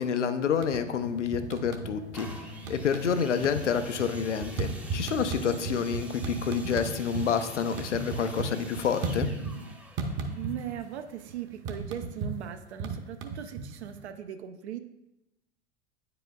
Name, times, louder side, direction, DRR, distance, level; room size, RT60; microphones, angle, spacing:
voice 1, 0.0-9.3, left 7 dB, 85° left, 9 dB, 0.6 m, -29 dB
sound 1, 0.5-1.0 1.3-2.4 2.6-3.1 3.4-7.3 7.6-9.7 10.0-10.8 11.1-14.0, right 4 dB, 35° right, 0.8 m, -34 dB
sound 2, 1.0-9.7, left 4 dB, 30° left, 0.7 m, -45 dB
sound 3, 2.1-11.8 12.5-12.6, right 1 dB, 5° right, 0.5 m, -48 dB
voice 2, 10.3-14.8, right 10 dB, 65° right, 8 dB, 0.5 m, -39 dB
9.2 x 4.9 x 2.3 m, 0.93 s
figure-of-eight pair, 85°, 35 cm